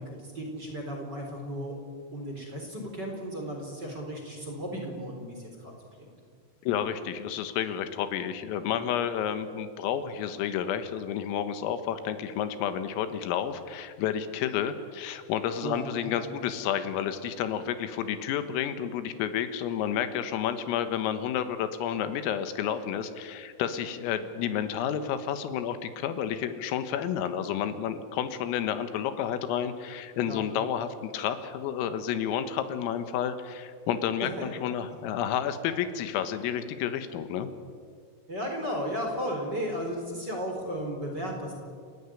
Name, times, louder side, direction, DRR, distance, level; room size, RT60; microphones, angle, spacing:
voice 1, 0.0-1.7 2.1-5.7 6.0-6.1 15.6-15.9 16.1-16.3 30.3-30.4 34.2-34.3 38.3-41.5, equal, 25° right, 1 dB, 3.6 m, -34 dB
voice 2, 6.6-37.5, left 9 dB, 85° left, 10 dB, 4.0 m, -30 dB
29.0 x 17.0 x 9.9 m, 2.1 s
omnidirectional pair, 5.9 m